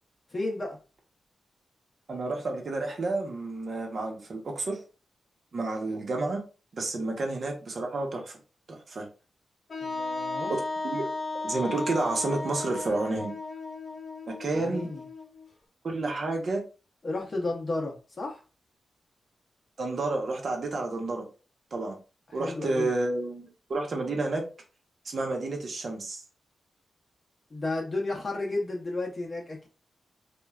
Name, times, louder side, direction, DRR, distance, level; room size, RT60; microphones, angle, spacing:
voice 1, 0.3-0.8 7.0-7.1 9.8-10.5 14.5-15.0 17.0-18.4 22.3-22.9 27.5-29.7, left 2 dB, 35° left, -1 dB, 0.7 m, -33 dB
voice 2, 2.1-4.8 5.5-6.4 6.7-8.4 8.7-9.1 10.8-11.1 11.4-13.3 14.4-14.9 15.8-16.6 19.8-21.2 21.7-22.0 22.3-24.4 25.0-26.2, right 2 dB, 55° right, 1 dB, 0.9 m, -30 dB
Wind instrument woodwind instrument, 9.7-15.5, left 3 dB, 55° left, 1.0 m, -35 dB
3.1 x 2.3 x 2.3 m, 0.33 s
cardioid pair, 100°, 0 cm